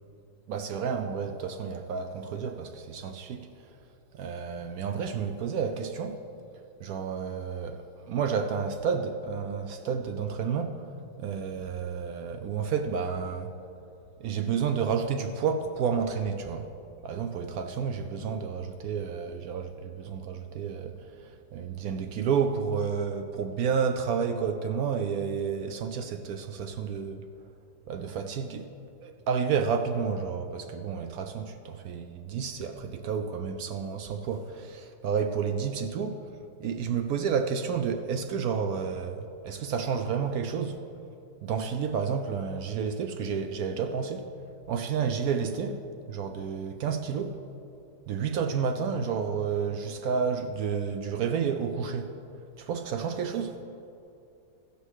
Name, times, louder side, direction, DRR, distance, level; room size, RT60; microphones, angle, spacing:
voice 1, 0.5-3.5 4.1-6.2 6.8-10.8 11.2-13.5 14.2-16.7 17.0-27.2 27.9-28.7 29.0-36.3 36.6-40.8 41.4-44.3 44.7-45.8 46.1-47.4 48.1-52.1 52.6-53.6, right 6 dB, 70° right, 0.9 m, -30 dB
15.0 x 5.4 x 6.4 m
omnidirectional pair, 1.8 m